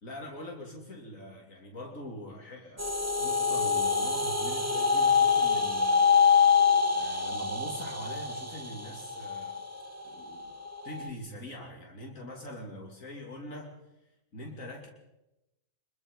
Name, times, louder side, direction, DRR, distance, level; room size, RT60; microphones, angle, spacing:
voice 1, 0.0-6.1 6.9-9.6 10.0-10.5 10.8-13.8 14.3-14.9, left 1 dB, 80° left, 0 dB, 3.3 m, -43 dB
sound 1, 2.8-11.1, left 6 dB, 10° right, 1.2 m, -25 dB
24.5 x 22.0 x 5.3 m, 0.94 s
omnidirectional pair, 1.4 m